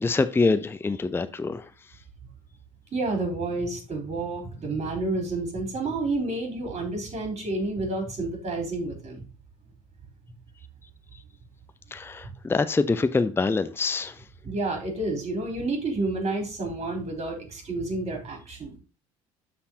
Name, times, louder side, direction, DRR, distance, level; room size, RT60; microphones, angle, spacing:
voice 1, 0.0-1.7 11.9-14.2, left 3 dB, 15° left, 0.5 m, -25 dB
voice 2, 2.9-9.3 14.4-18.8, right 2 dB, 40° right, 3.9 m, -30 dB
12.5 x 4.3 x 2.8 m
hypercardioid pair, 65°, 17 cm